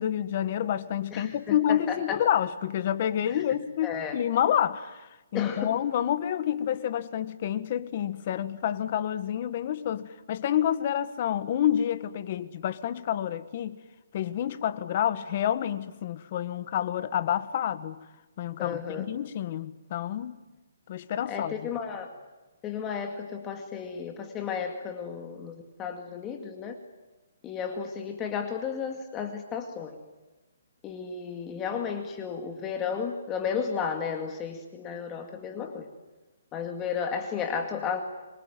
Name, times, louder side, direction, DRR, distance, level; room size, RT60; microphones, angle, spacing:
voice 1, 0.0-13.8 14.1-18.0 18.4-20.4 20.9-21.7, left 10 dB, 35° left, 13 dB, 1.5 m, -28 dB
voice 2, 1.1-2.2 3.3-3.4 3.8-4.2 5.3-5.8 18.6-19.1 21.3-22.1 22.6-26.8 27.4-30.0 30.8-35.9 36.5-38.0, left 6 dB, 15° left, 4 dB, 2.1 m, -33 dB
26.5 x 23.5 x 9.3 m, 1.1 s
hypercardioid pair, 165°, 0 cm